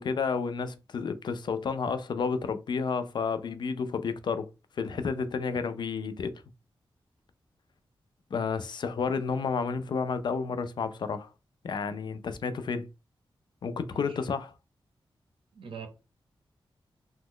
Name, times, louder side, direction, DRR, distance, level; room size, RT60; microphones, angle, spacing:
voice 1, 0.0-4.5 4.8-6.3 8.3-11.3 11.6-12.9 13.6-14.5, left 5 dB, 55° left, 0.3 m, -31 dB
voice 2, 13.9-14.2 15.5-15.9, right 6 dB, 75° right, 0.6 m, -43 dB
2.9 x 2.1 x 3.6 m
wide cardioid pair, 155°, 9 cm